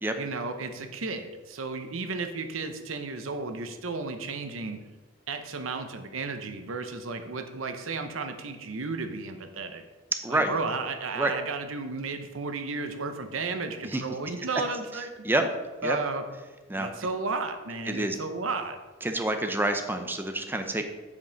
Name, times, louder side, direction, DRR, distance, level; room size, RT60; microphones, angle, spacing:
voice 1, 0.2-4.8 5.3-9.8 10.3-15.3 15.8-16.2 16.7-18.8, right 3 dB, 90° right, 7 dB, 0.8 m, -33 dB
voice 2, 10.2-10.5 11.1-11.3 13.8-14.0 15.2-15.4 15.8-16.0 16.7-16.9 17.9-18.2 19.0-20.8, right 2 dB, 10° right, 6 dB, 0.6 m, -27 dB
8.3 x 5.3 x 5.2 m, 1.3 s
head